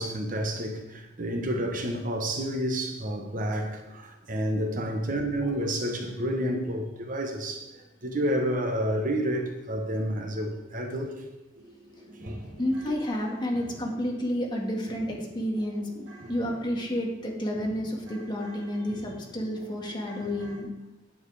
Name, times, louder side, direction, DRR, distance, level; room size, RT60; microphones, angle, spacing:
voice 1, 0.0-11.2 12.2-12.4 12.8-12.9, equal, 45° right, 1.3 m, -30 dB
sound 1, 11.6-20.6, right 1 dB, 75° right, 2.8 m, -47 dB
voice 2, 12.6-20.7, equal, 25° left, 1.9 m, -30 dB
9.5 x 9.5 x 4.9 m
head